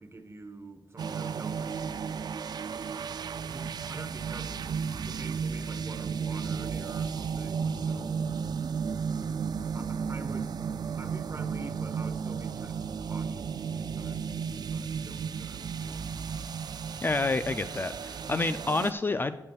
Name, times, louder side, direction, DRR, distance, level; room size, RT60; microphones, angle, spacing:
voice 1, 0.0-2.4 3.5-8.3 9.1-9.4 9.7-10.6 10.9-14.3 14.7-16.2, right 2 dB, 35° right, 1.1 m, -47 dB
sound 1, 1.0-18.9, right 6 dB, 55° right, 0.3 m, -34 dB
voice 2, 17.0-19.4, left 3 dB, 25° left, 0.3 m, -29 dB
18.0 x 6.8 x 2.4 m
cardioid pair, 85°, 8 cm